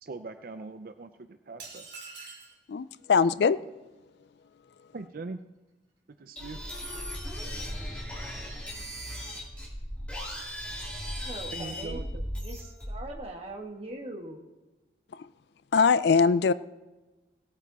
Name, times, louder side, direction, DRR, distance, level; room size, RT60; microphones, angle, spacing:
voice 1, 0.0-1.9 4.9-5.4 6.2-6.6 11.5-12.2, right 3 dB, 50° right, 9 dB, 0.5 m, -41 dB
sound 1, 1.6-2.6, right 4 dB, 75° right, 2.6 m, -44 dB
voice 2, 2.7-3.6 15.1-15.3 15.7-16.5, left 5 dB, 65° left, 17 dB, 0.4 m, -22 dB
sound 2, 6.4-13.2, equal, 5° left, 2.5 m, -37 dB
voice 3, 11.2-14.4, right 1 dB, 35° right, 1 dB, 1.8 m, -41 dB
18.0 x 8.9 x 4.1 m, 1.1 s
head